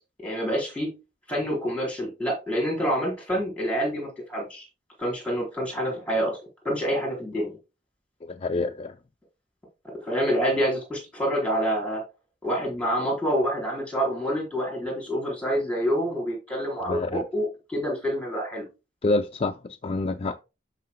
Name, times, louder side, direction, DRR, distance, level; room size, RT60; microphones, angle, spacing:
voice 1, 0.2-0.9 1.3-4.7 5.0-6.4 6.6-7.6 10.0-12.0 12.4-18.6, equal, 5° left, 4.2 m, -27 dB
voice 2, 8.2-9.0 16.9-17.2 19.0-20.4, left 2 dB, 35° left, 0.4 m, -27 dB
12.0 x 5.6 x 2.2 m
head